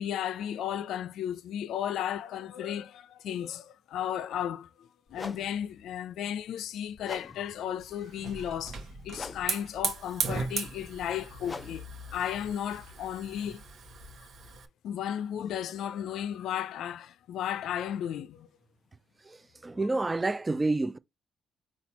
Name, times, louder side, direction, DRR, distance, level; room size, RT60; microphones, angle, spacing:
voice 1, 0.0-8.8 9.0-13.6 14.8-18.5, left 10 dB, 75° left, 0.4 m, -34 dB
sound 1, 4.3-4.5 5.1-13.9, left 3 dB, 30° left, 0.6 m, -47 dB
Hiss / Fire, 7.8-14.6, right 5 dB, 60° right, 1.0 m, -37 dB
voice 2, 19.2-21.0, right 2 dB, 20° right, 0.4 m, -29 dB
4.2 x 2.4 x 4.1 m
cardioid pair, 90°, 0 cm